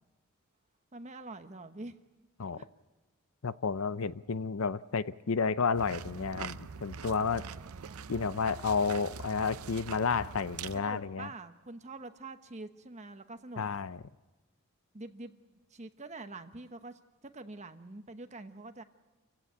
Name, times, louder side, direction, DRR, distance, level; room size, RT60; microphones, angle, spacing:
voice 1, 0.9-2.0 2.6-2.7 7.3-8.1 10.7-13.6 14.9-15.4 15.7-18.8, right 2 dB, 35° right, 8 dB, 1.1 m, -46 dB
voice 2, 3.4-7.4 8.1-11.3 13.6-14.0, left 5 dB, 70° left, 16 dB, 0.6 m, -31 dB
sound 1, 5.7-10.8, right 6 dB, 85° right, 0.6 m, -43 dB
27.0 x 16.0 x 8.3 m, 1.2 s
head